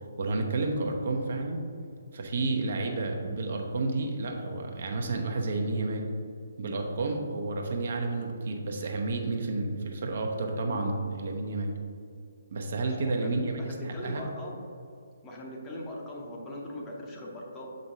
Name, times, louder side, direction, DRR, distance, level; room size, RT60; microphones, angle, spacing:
voice 1, 0.2-1.6 2.1-6.1 6.6-11.7 12.5-14.3, right 3 dB, 50° right, 2 dB, 0.7 m, -31 dB
voice 2, 12.8-14.6 15.2-17.7, left 1 dB, 15° left, -2 dB, 0.8 m, -40 dB
6.7 x 5.1 x 2.7 m, 2.3 s
figure-of-eight pair, 135°, 0 cm